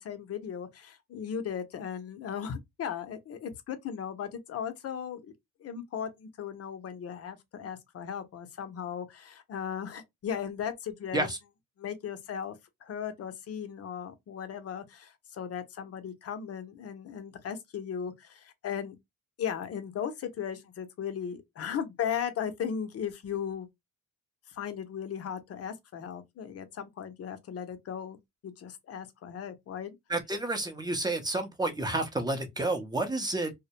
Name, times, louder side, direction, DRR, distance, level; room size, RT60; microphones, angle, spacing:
voice 1, 0.0-5.3 5.6-11.3 11.8-12.6 12.8-19.0 19.4-23.7 24.5-28.2 28.4-30.0, left 8 dB, 50° left, 0.6 m, -37 dB
voice 2, 30.1-33.5, right 2 dB, 15° right, 0.6 m, -30 dB
2.2 x 2.0 x 2.7 m
cardioid pair, 90°, 30 cm